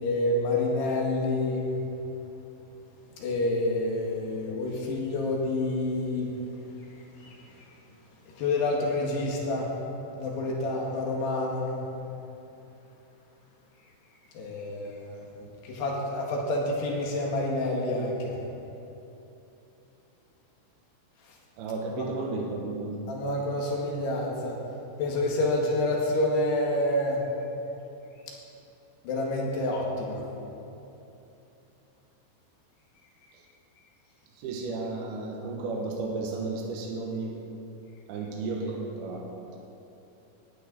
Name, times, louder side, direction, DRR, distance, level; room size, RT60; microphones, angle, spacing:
voice 1, 0.0-1.7 3.2-6.3 7.2-7.4 8.4-9.7 10.2-11.8 14.4-15.2 15.6-18.4 21.9-22.0 23.1-24.6 25.0-27.2 29.0-30.2, left 2 dB, 75° left, -2 dB, 4.0 m, -28 dB
voice 2, 21.6-23.0 34.4-37.3 38.1-39.6, right 3 dB, 75° right, 0 dB, 2.9 m, -33 dB
19.0 x 12.0 x 4.1 m, 3.0 s
omnidirectional pair, 4.8 m